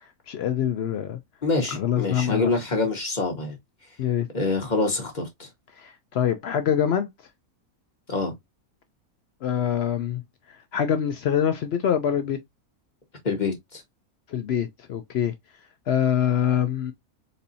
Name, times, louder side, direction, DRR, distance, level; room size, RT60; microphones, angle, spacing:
voice 1, 0.3-1.2 1.7-2.5 4.0-4.3 5.8-7.1 9.4-10.2 10.7-12.4 14.3-15.3 15.9-16.9, left 9 dB, 70° left, 0.6 m, -24 dB
voice 2, 1.4-3.6 4.3-5.5 8.1-8.3 13.2-13.8, left 3 dB, 35° left, 1.1 m, -26 dB
4.2 x 2.6 x 2.6 m
omnidirectional pair, 1.5 m